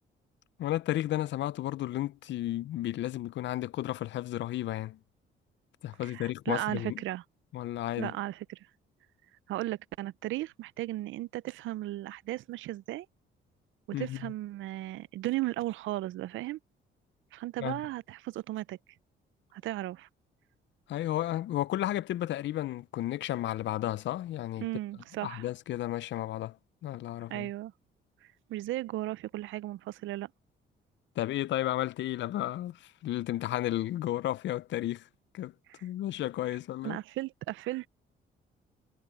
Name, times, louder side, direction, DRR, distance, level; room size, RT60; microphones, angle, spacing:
voice 1, 0.6-5.0 5.8-7.0 7.5-8.1 13.9-14.3 17.6-17.8 20.9-24.7 25.2-26.6 26.8-27.5 31.2-35.1 35.3-35.5 35.8-37.0, left 14 dB, 65° left, 0.5 m, -33 dB
voice 2, 6.0-7.2 8.0-8.6 9.5-13.1 14.0-16.6 17.3-18.8 19.5-20.1 24.6-25.5 27.3-27.7 28.5-30.3 35.7-35.8 36.8-37.9, right 16 dB, 80° right, 0.5 m, -35 dB
cardioid pair, 90°, 20 cm